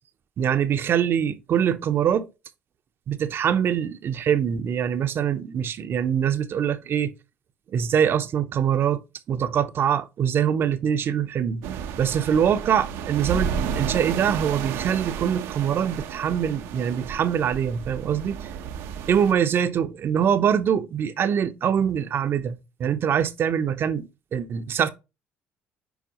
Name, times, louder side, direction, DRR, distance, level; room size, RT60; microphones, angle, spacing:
voice 1, 0.4-2.3 3.1-7.1 7.7-9.0 9.3-11.6 12.0-18.4 19.1-24.9, right 8 dB, 50° right, 0.9 m, -24 dB
sound 1, 11.6-19.3, right 7 dB, 80° right, 1.0 m, -32 dB
7.2 x 4.8 x 3.0 m
supercardioid pair, 85°, 5 cm